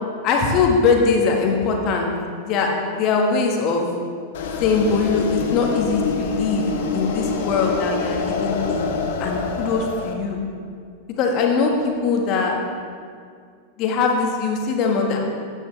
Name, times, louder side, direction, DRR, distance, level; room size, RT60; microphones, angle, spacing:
voice 1, 0.2-2.1 2.4-3.9 4.6-6.7 6.9-8.9 9.2-10.4 11.2-12.5 13.8-15.2, left 4 dB, 40° left, 1 dB, 1.6 m, -21 dB
sound 1, 4.3-10.1, left 4 dB, 55° left, 1.0 m, -26 dB
14.0 x 9.0 x 3.3 m, 2.2 s
figure-of-eight pair, 90°, 0 cm